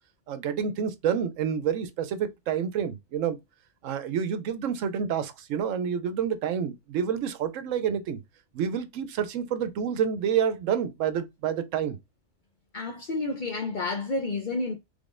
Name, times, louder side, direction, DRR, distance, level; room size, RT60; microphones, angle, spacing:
voice 1, 0.3-3.4 3.8-8.2 8.5-12.0, right 8 dB, 75° right, 1.0 m, -28 dB
voice 2, 12.7-14.8, left 3 dB, 50° left, 0.6 m, -30 dB
3.6 x 3.4 x 2.5 m
omnidirectional pair, 1.3 m